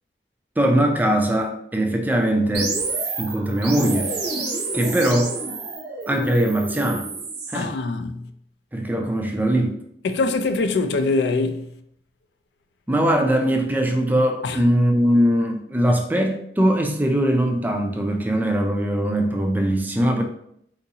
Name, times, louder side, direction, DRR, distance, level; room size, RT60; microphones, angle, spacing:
voice 1, 0.6-2.8 3.2-4.1 4.7-5.4 6.1-7.1 7.5-7.8 8.7-9.8 12.9-20.2, right 1 dB, 10° right, 0.3 m, -21 dB
sound 1, 2.5-7.6, right 3 dB, 60° right, 0.6 m, -29 dB
voice 2, 7.5-8.2 10.0-11.7 14.4-14.6, left 3 dB, 70° left, 0.3 m, -23 dB
3.8 x 2.6 x 2.8 m
head